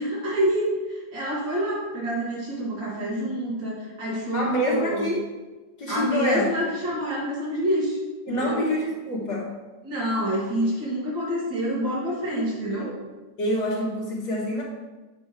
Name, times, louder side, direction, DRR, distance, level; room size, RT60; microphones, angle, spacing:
voice 1, 0.0-5.1 5.9-8.0 8.4-8.6 9.8-12.9, equal, 85° right, -6 dB, 3.1 m, -27 dB
voice 2, 4.3-5.2 5.8-6.5 8.3-9.5 12.3-13.0 13.4-14.6, equal, 65° left, -8 dB, 1.7 m, -26 dB
8.4 x 6.0 x 3.3 m, 1.2 s
omnidirectional pair, 1.9 m